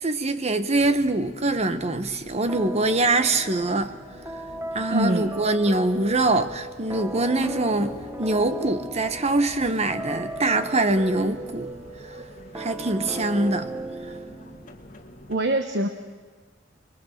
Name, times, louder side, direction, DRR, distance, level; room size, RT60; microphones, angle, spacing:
voice 1, 0.0-4.0 4.7-11.7 12.5-13.7, right 2 dB, 35° right, 1.1 m, -24 dB
sound 1, 0.7-15.4, equal, 40° left, 2.2 m, -47 dB
sound 2, 2.5-14.9, right 1 dB, 15° right, 1.2 m, -36 dB
voice 2, 4.9-5.3 15.3-15.9, right 1 dB, 60° right, 1.2 m, -23 dB
23.5 x 22.5 x 6.6 m
head